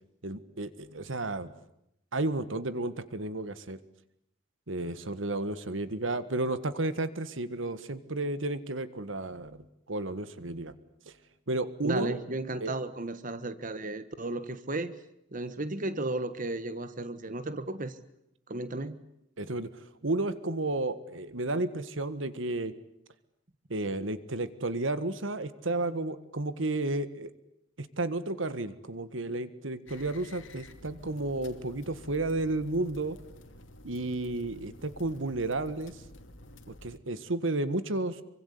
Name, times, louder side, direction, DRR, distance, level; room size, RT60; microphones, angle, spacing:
voice 1, 0.2-1.5 2.1-3.8 4.7-10.7 11.1-11.2 11.5-12.2 12.6-12.7 19.4-22.7 23.7-27.3 27.8-33.2 33.8-36.0 36.7-38.2, right 2 dB, 90° right, 13 dB, 1.7 m, -32 dB
voice 2, 11.8-14.9 15.3-18.0 18.5-19.0, right 2 dB, 45° right, 12 dB, 1.4 m, -34 dB
sound 1, 29.9-37.0, left 1 dB, 80° left, 2.7 m, -51 dB
27.0 x 24.5 x 8.5 m, 0.78 s
head